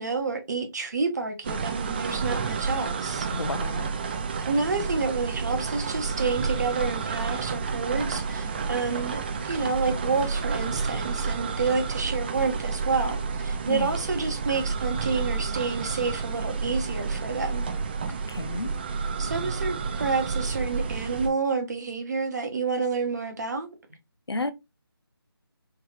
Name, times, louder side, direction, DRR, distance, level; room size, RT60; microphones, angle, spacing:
voice 1, 0.0-3.3 4.5-17.7 19.2-23.7, right 4 dB, 45° right, 1.0 m, -29 dB
sound 1, 1.4-21.3, right 5 dB, 25° right, 0.6 m, -30 dB
voice 2, 3.3-3.9 13.7-13.9 18.3-18.7 24.3-24.5, left 2 dB, 90° left, 0.7 m, -31 dB
3.6 x 3.4 x 2.9 m
figure-of-eight pair, 165°, 13 cm